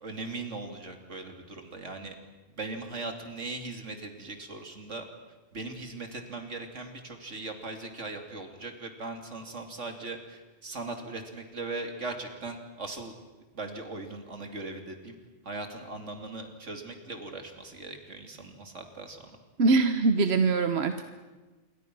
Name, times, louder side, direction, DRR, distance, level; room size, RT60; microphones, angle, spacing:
voice 1, 0.0-2.1 2.5-5.0 5.5-13.1 13.5-15.2 15.4-19.4, right 3 dB, 75° right, 5 dB, 3.1 m, -39 dB
voice 2, 19.6-21.0, right 3 dB, 60° right, 8 dB, 1.3 m, -23 dB
27.5 x 23.0 x 6.1 m, 1.2 s
omnidirectional pair, 1.2 m